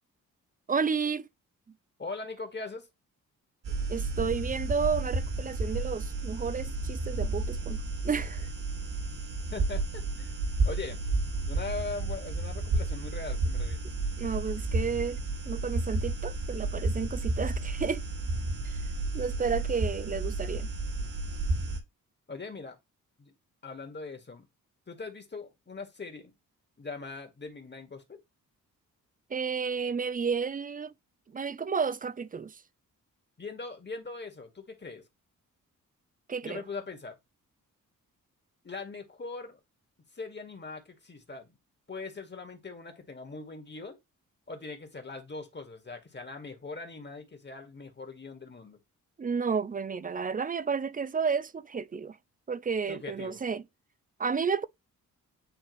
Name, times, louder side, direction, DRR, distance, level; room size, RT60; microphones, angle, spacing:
voice 1, 0.7-1.3 3.9-8.5 14.2-15.2 15.5-18.0 18.6-18.8 19.1-20.7 29.3-30.9 31.3-32.6 36.3-36.6 49.2-52.2 52.5-53.6 54.2-54.6, right 5 dB, 25° right, 0.4 m, -31 dB
voice 2, 2.0-2.9 9.5-10.3 10.6-11.0 11.5-13.9 22.3-22.8 23.2-23.3 23.6-24.4 24.9-26.3 26.8-28.2 33.4-35.0 36.4-37.2 38.6-39.6 40.1-41.6 41.9-44.0 44.5-48.8 52.9-53.4, left 3 dB, 30° left, 2.1 m, -41 dB
sound 1, 3.6-21.8, right 2 dB, 70° right, 2.3 m, -32 dB
9.0 x 3.3 x 3.2 m
cardioid pair, 65°, 33 cm